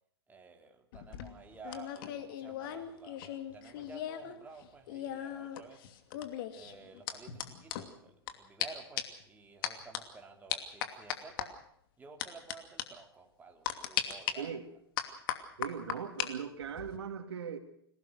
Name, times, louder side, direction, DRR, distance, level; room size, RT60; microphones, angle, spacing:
voice 1, 0.3-5.8 6.5-11.6 12.0-14.6, right 4 dB, 10° right, 3 dB, 3.1 m, -52 dB
sound 1, 0.9-4.3 4.6-8.3 8.6-8.7 9.0-9.2 9.6-10.0 10.5-11.5 12.2-12.5 12.8-12.9 13.6-14.3 15.0-16.3 16.6-17.0, left 11 dB, 55° left, 2.6 m, -37 dB
voice 2, 15.6-17.6, right 7 dB, 80° right, 7 dB, 2.7 m, -39 dB
26.5 x 17.5 x 6.5 m, 0.70 s
hypercardioid pair, 120°, 13 cm